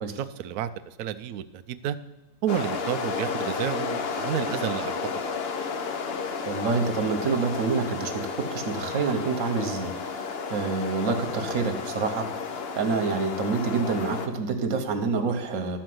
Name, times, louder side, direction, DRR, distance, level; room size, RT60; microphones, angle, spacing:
voice 1, 0.1-2.0 2.4-4.9, right 10 dB, 85° right, 10 dB, 0.7 m, -30 dB
sound 1, 2.5-14.3, left 5 dB, 75° left, 0.5 m, -32 dB
voice 2, 6.5-15.8, right 4 dB, 50° right, 5 dB, 1.2 m, -27 dB
11.5 x 4.5 x 7.8 m, 1.0 s
omnidirectional pair, 2.0 m